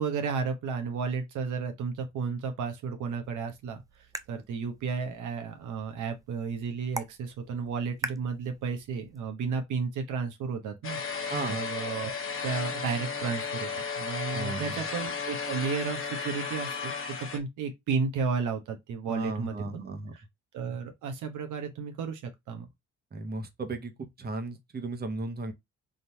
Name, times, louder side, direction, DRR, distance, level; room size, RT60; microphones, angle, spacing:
voice 1, 0.0-3.8 4.3-12.1 12.4-13.7 14.0-19.8 20.1-20.2 20.5-22.7, right 5 dB, 80° right, 1.0 m, -33 dB
sound 1, 3.2-9.3, right 2 dB, 10° right, 0.5 m, -44 dB
sound 2, 10.8-17.4, left 5 dB, 45° left, 1.2 m, -34 dB
voice 2, 11.3-11.6 14.3-14.8 19.1-20.1 23.1-25.5, right 2 dB, 30° right, 1.0 m, -35 dB
3.8 x 2.7 x 4.4 m
cardioid pair, 90°, 30 cm